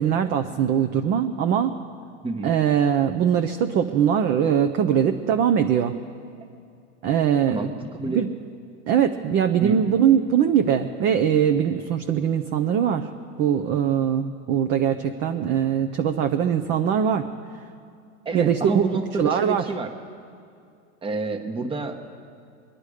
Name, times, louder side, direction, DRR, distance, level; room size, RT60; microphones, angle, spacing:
voice 1, 0.0-1.7 2.4-6.0 7.0-7.7 8.0-8.3 8.9-13.1 13.4-17.2 18.3-18.9 19.2-19.6, right 8 dB, 30° right, 7 dB, 0.6 m, -21 dB
voice 2, 7.5-8.2 9.6-9.8 18.2-19.9 21.0-22.0, right 3 dB, 15° right, 6 dB, 1.0 m, -29 dB
23.5 x 10.0 x 5.0 m, 2.4 s
supercardioid pair, 140°, 39 cm